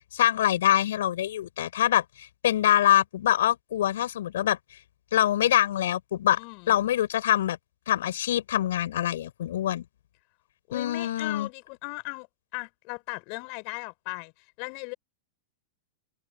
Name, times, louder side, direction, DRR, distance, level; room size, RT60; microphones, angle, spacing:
voice 1, 0.1-4.6 5.1-6.4 6.7-7.6 7.9-9.8 10.7-11.5, left 12 dB, 65° left, 7.7 m, -24 dB
voice 2, 6.4-6.8 10.7-12.3 12.5-14.3 14.6-14.9, left 38 dB, 45° left, 5.6 m, -37 dB
figure-of-eight pair, 95°, 0 cm